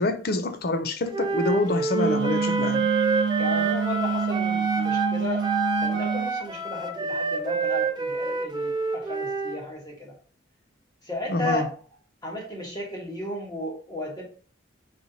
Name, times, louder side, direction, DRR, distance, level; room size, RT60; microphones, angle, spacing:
voice 1, 0.0-2.8 11.3-11.7, left 2 dB, 50° left, 0.5 m, -26 dB
Wind instrument woodwind instrument, 1.1-5.2 5.4-9.6, right 4 dB, 20° right, 0.3 m, -28 dB
Wind instrument woodwind instrument 2, 1.9-6.3, right 6 dB, 70° right, 0.5 m, -26 dB
voice 2, 3.4-5.4 5.8-10.1 11.0-11.7 12.2-14.2, left 1 dB, 20° left, 1.1 m, -34 dB
4.3 x 4.1 x 2.7 m
head